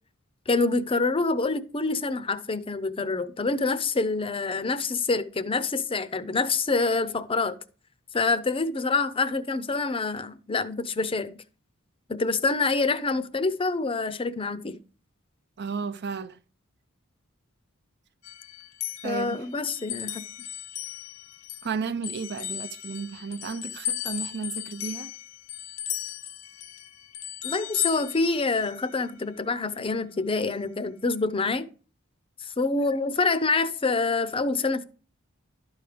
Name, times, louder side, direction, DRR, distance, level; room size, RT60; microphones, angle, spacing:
voice 1, 0.5-7.6 8.1-11.3 12.1-14.8 19.0-20.2 27.4-31.7 32.4-34.8, left 3 dB, 25° left, 0.6 m, -26 dB
voice 2, 15.6-16.4 19.0-19.5 21.6-25.1, right 5 dB, 55° right, 0.6 m, -33 dB
sound 1, 18.2-21.7 22.0-28.9, left 12 dB, 90° left, 0.9 m, -36 dB
12.0 x 4.9 x 5.1 m
head